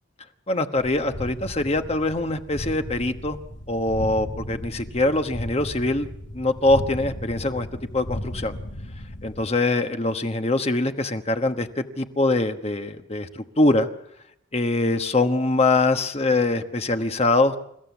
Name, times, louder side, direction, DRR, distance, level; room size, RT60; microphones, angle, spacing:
voice 1, 0.5-3.4 3.7-6.1 6.3-7.7 7.9-8.6 9.2-13.9 14.5-17.6, left 2 dB, 35° left, 7 dB, 1.2 m, -23 dB
sound 1, 0.8-9.4, left 1 dB, 80° left, 2.3 m, -36 dB
29.5 x 15.0 x 7.2 m, 0.75 s
head